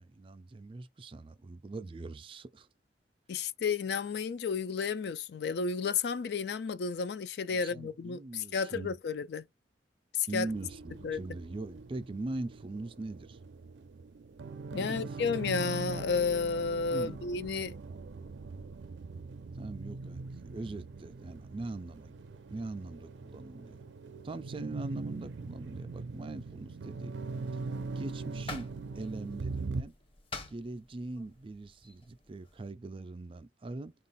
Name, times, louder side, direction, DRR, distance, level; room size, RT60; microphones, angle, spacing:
voice 1, 0.0-2.7 7.5-9.0 10.3-13.4 14.7-15.0 16.9-17.2 19.5-22.2 22.5-23.8 24.2-27.2 28.0-29.9 30.5-33.9, right 2 dB, 30° right, 0.4 m, -41 dB
voice 2, 3.3-9.5 10.1-10.5 11.0-11.2 14.7-17.8, left 5 dB, 65° left, 0.4 m, -32 dB
sound 1, 10.5-29.8, right 3 dB, 90° right, 0.5 m, -42 dB
sound 2, 27.3-32.7, left 2 dB, 30° left, 0.7 m, -49 dB
3.8 x 2.4 x 4.0 m
head